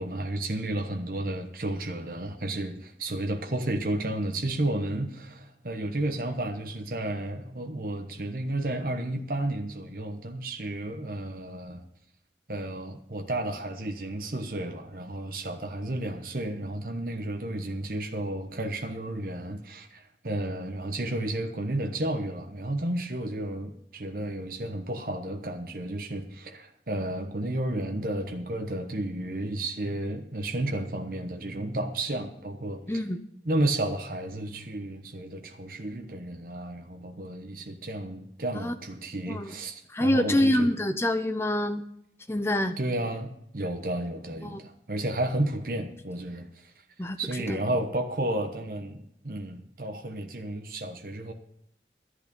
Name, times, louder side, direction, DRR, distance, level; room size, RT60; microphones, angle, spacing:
voice 1, 0.0-11.8 12.5-33.0 33.5-40.7 42.8-46.7 47.2-51.3, right 1 dB, 50° right, 4 dB, 1.1 m, -32 dB
voice 2, 39.9-41.8 42.3-42.8 44.4-44.6 47.0-47.2 47.5-47.6, left 1 dB, 15° left, 8 dB, 0.8 m, -26 dB
11.5 x 11.0 x 5.4 m, 0.74 s
head